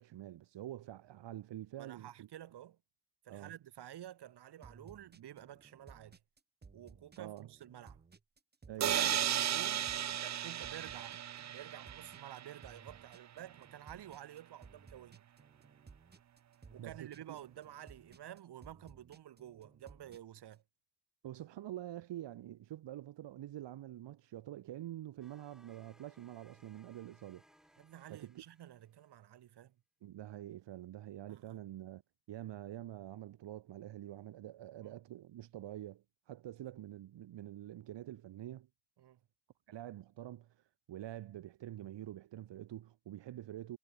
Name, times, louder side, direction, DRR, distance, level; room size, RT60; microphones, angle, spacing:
voice 1, 0.0-2.3 3.3-3.5 7.2-7.5 8.7-9.2 16.8-17.4 21.2-27.4 28.1-28.4 30.0-32.0 32.3-38.7 39.7-43.8, right 13 dB, 85° right, 1.7 m, -46 dB
voice 2, 1.8-2.8 3.2-6.2 6.7-8.0 8.9-9.9 10.2-15.2 16.7-20.6 27.8-29.7 31.3-31.6 34.8-35.0 39.0-39.2, right 11 dB, 70° right, 1.8 m, -51 dB
sound 1, 4.6-20.5, right 4 dB, 25° right, 2.4 m, -59 dB
sound 2, 8.8-12.6, right 10 dB, 40° right, 0.6 m, -35 dB
sound 3, 25.2-29.1, equal, ahead, 7.9 m, -67 dB
wide cardioid pair, 160°, 42 cm